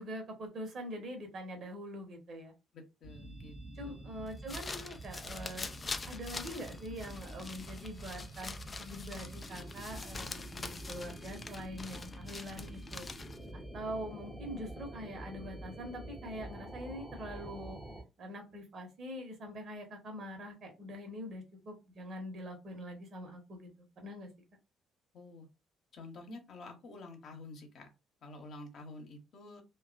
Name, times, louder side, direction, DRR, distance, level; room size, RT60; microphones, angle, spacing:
voice 1, 0.0-2.5 3.8-5.7 6.0-13.1 13.5-17.8 18.2-24.3, equal, 50° right, 1.0 m, -44 dB
voice 2, 2.7-4.0 14.5-14.6 25.1-25.5 25.9-27.9 28.2-29.6, left 2 dB, 50° left, 0.9 m, -49 dB
sound 1, 3.0-18.0, right 1 dB, 5° left, 0.7 m, -47 dB
sound 2, 4.3-13.5, left 3 dB, 30° left, 0.3 m, -44 dB
3.0 x 2.3 x 2.4 m
figure-of-eight pair, 45°, 0 cm